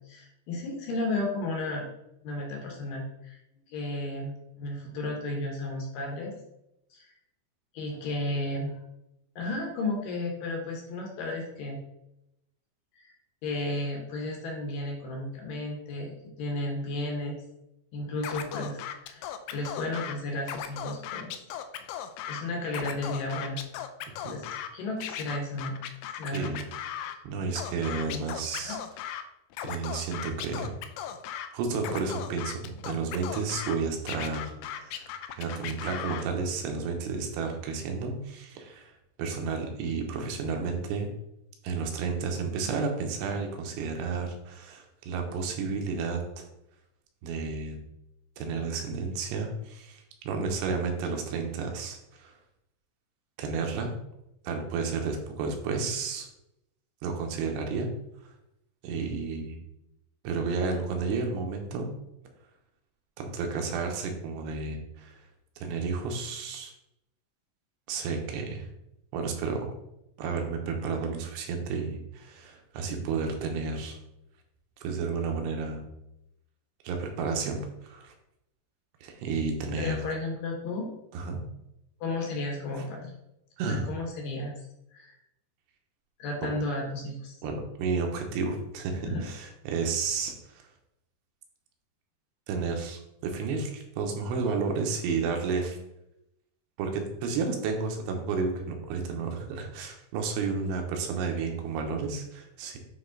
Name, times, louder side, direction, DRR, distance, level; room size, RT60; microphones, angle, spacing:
voice 1, 0.1-1.8 2.2-3.4 3.7-6.3 6.9-7.1 7.7-8.8 9.4-11.8 12.9-13.1 13.4-16.1 16.4-17.4 17.9-21.3 22.3-23.6 24.3-25.8 26.2-26.6 27.0-27.2 27.9-28.2 28.6-28.8 79.8-80.9 82.0-83.2 83.7-84.6 84.9-85.1 86.2-87.4 89.0-89.2, left 2 dB, 70° left, 1 dB, 2.5 m, -33 dB
Scratching (performance technique), 18.2-20.1 20.4-22.4 22.7-24.7 25.0-27.2 27.6-29.2 29.5-31.5 31.8-33.8 34.1-36.2, left 10 dB, 85° left, 2.6 m, -37 dB
voice 2, 26.3-26.6 27.2-28.8 29.6-30.7 31.5-38.9 39.2-41.1 41.6-46.4 47.2-47.8 48.4-52.4 53.4-53.9 54.4-56.3 57.0-57.9 58.8-59.6 60.2-61.9 63.2-65.2 65.6-66.7 67.9-68.7 69.1-69.7 70.2-74.0 74.8-75.8 76.8-78.1 79.0-80.0 81.1-81.4 83.6-83.9 86.4-86.5 87.4-90.7 92.5-95.8 96.8-102.8, right 4 dB, 90° right, 3 dB, 3.1 m, -32 dB
9.3 x 3.3 x 3.9 m, 0.85 s
omnidirectional pair, 4.7 m